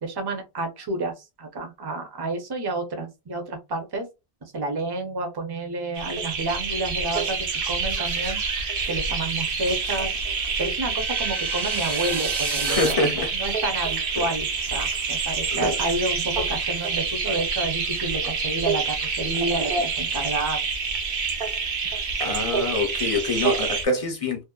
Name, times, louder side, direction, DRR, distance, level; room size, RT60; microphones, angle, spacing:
voice 1, 0.0-4.1 4.5-7.4 7.7-8.4 8.9-10.1 10.6-20.6, right 2 dB, 25° right, 0.6 m, -30 dB
sound 1, 6.0-23.9, right 5 dB, 60° right, 0.8 m, -27 dB
sound 2, 10.3-12.9, right 4 dB, 85° right, 1.1 m, -32 dB
voice 2, 12.6-13.4 14.2-14.3 15.5-15.8 22.2-24.4, left 3 dB, 40° left, 0.6 m, -25 dB
2.7 x 2.1 x 2.3 m
omnidirectional pair, 1.1 m